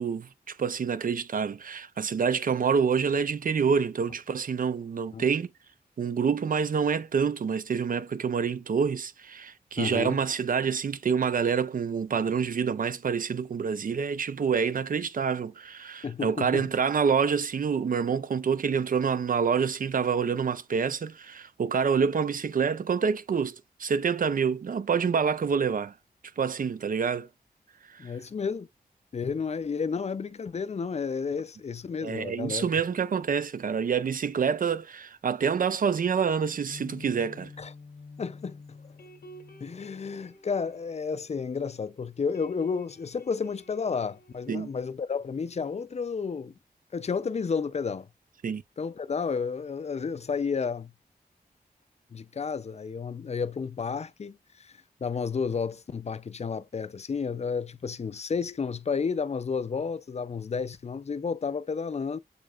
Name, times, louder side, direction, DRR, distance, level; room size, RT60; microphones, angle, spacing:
voice 1, 0.0-5.5 6.0-25.9 26.4-27.3 27.9-28.1 32.0-37.5 44.5-44.7 48.4-48.6, right 6 dB, 55° right, 0.5 m, -27 dB
voice 2, 9.8-10.2 16.0-16.7 28.0-28.7 29.1-32.7 37.6-37.7 38.2-38.8 39.6-46.5 46.9-48.1 48.8-50.9 52.1-62.2, left 5 dB, 40° left, 0.4 m, -31 dB
sound 1, 36.1-41.9 42.1-45.6, left 3 dB, 75° left, 1.0 m, -50 dB
6.6 x 3.2 x 2.4 m
cardioid pair, 60°, 16 cm